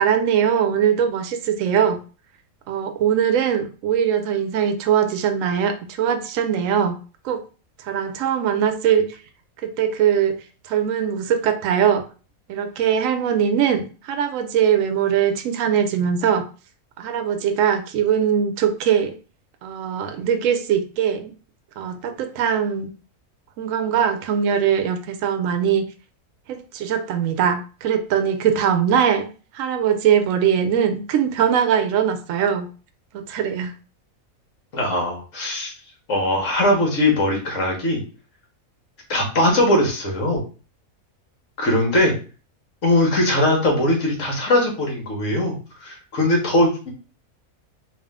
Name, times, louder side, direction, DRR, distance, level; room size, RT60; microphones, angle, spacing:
voice 1, 0.0-2.0 2.7-7.0 7.2-7.4 7.8-9.2 9.6-10.4 10.6-12.0 12.5-16.4 17.0-19.1 19.6-21.3 21.8-22.9 23.6-25.9 26.5-29.3 29.5-32.7 33.1-33.7, right 8 dB, 70° right, 7 dB, 0.9 m, -21 dB
voice 2, 34.7-35.7 36.1-38.0 39.1-40.4 41.6-42.1 42.8-45.6 45.8-46.9, left 1 dB, 60° left, 1 dB, 1.5 m, -20 dB
3.5 x 2.6 x 3.5 m, 0.36 s
omnidirectional pair, 1.5 m